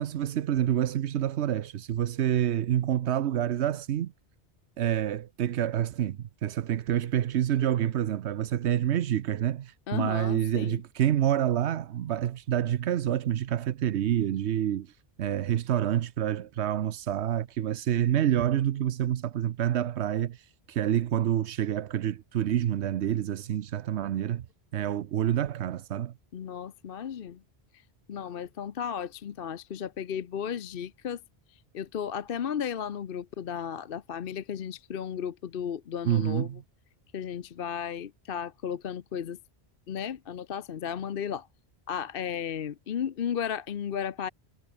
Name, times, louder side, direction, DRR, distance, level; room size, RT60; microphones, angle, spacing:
voice 1, 0.0-4.1 4.8-14.9 15.2-24.4 24.7-26.1 36.0-36.6, right 11 dB, 90° right, 1.0 m, -27 dB
voice 2, 9.9-10.8 26.3-27.4 28.1-31.2 31.7-36.5 37.1-39.4 39.9-41.5 41.9-44.3, left 8 dB, 60° left, 0.9 m, -34 dB
omnidirectional pair, 1.1 m